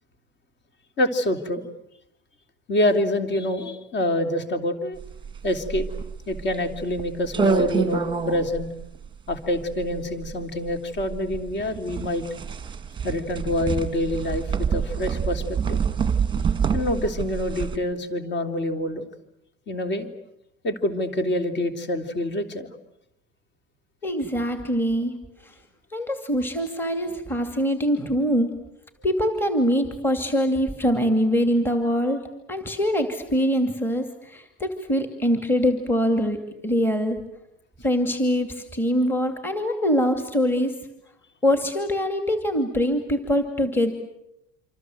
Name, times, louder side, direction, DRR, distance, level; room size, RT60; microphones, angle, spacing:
voice 1, 1.0-1.6 2.7-5.0 5.4-5.9 6.3-8.7 9.3-12.2 13.0-15.8 16.7-19.0 19.7-20.1 20.6-22.7, left 1 dB, 40° left, 6 dB, 3.5 m, -26 dB
sound 1, 5.0-17.8, right 6 dB, 15° right, 1.5 m, -27 dB
voice 2, 24.0-25.2 25.4-25.5 25.9-28.5 29.0-32.2 32.5-36.4 36.6-37.2 37.8-40.7 41.4-43.9, equal, 5° left, 5 dB, 2.5 m, -23 dB
27.0 x 26.5 x 7.9 m, 0.81 s
cardioid pair, 155°, 30 cm